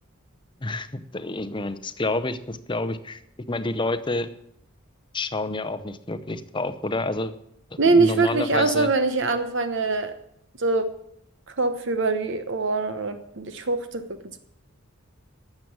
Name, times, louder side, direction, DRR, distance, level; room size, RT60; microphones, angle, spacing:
voice 1, 0.6-3.2 3.5-4.3 5.1-7.3 7.7-8.9, left 2 dB, 25° left, 11 dB, 0.7 m, -29 dB
voice 2, 7.8-10.1 10.6-10.9 11.5-14.0, right 3 dB, 60° right, 9 dB, 1.0 m, -23 dB
12.5 x 7.6 x 8.7 m, 0.75 s
head